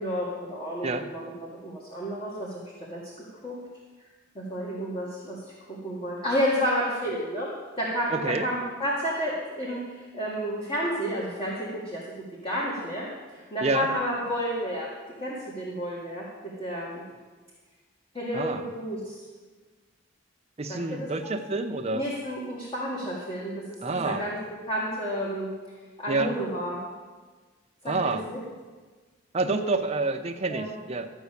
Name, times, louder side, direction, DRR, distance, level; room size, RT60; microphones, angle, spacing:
voice 1, 0.0-3.0 3.4-3.6 4.4-5.4 5.7-7.5 7.8-12.0 12.4-14.9 15.2-17.0 18.1-19.2 20.7-21.1 21.9-23.6 23.9-24.4 24.7-25.5 26.0-26.8 27.8-28.4 29.4-29.7 30.5-30.7, equal, 25° left, -5 dB, 1.8 m, -31 dB
voice 2, 8.1-8.5 13.6-13.9 18.3-18.6 20.6-22.1 23.8-24.3 26.1-26.3 27.8-28.3 29.3-31.1, right 3 dB, 30° right, 5 dB, 0.8 m, -28 dB
13.0 x 5.5 x 8.3 m, 1.4 s
head